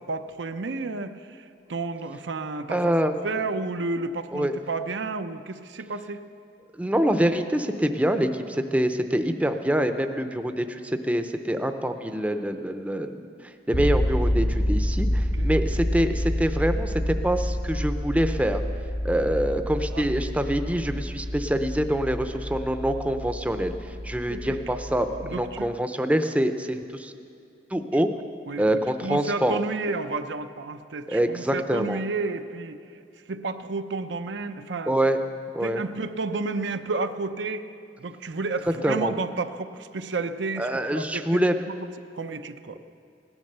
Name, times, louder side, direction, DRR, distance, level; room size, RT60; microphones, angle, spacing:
voice 1, 0.0-2.9 3.2-6.2 10.3-10.4 15.3-15.5 19.9-20.1 24.3-24.6 25.2-25.7 27.9-28.0 28.5-32.8 33.3-35.0 35.6-37.7 38.0-41.7 42.1-42.8, right 3 dB, 85° right, 9 dB, 0.7 m, -31 dB
voice 2, 2.7-3.2 4.3-4.5 6.7-13.3 13.7-18.6 19.0-23.7 24.0-27.1 27.7-28.1 28.6-29.6 31.1-32.0 34.9-35.2 35.5-35.8 38.8-39.1 40.6-41.6, right 1 dB, 10° right, 7 dB, 0.6 m, -25 dB
sound 1, 13.7-25.7, equal, 40° left, 0.9 m, -28 dB
17.0 x 11.0 x 6.7 m, 2.4 s
head